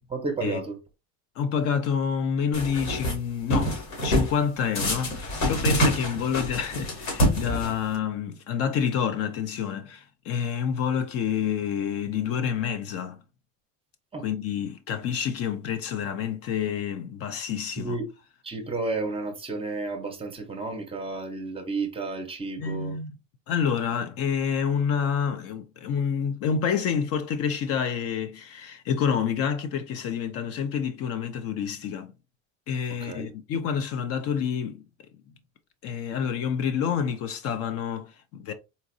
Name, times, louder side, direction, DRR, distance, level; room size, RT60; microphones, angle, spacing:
voice 1, 0.1-0.8 14.1-14.3 17.8-18.1 18.4-23.0 33.0-33.3, right 3 dB, 20° right, 0.7 m, -32 dB
voice 2, 1.4-13.2 14.2-18.0 22.6-23.2 23.5-32.1 32.7-34.8 35.3-35.4 35.8-38.5, left 7 dB, 50° left, 0.5 m, -28 dB
sound 1, 2.5-3.2 3.5-4.3 4.8-8.0, equal, 85° left, 2.0 m, -26 dB
4.0 x 2.5 x 2.5 m
cardioid pair, 140°, 31 cm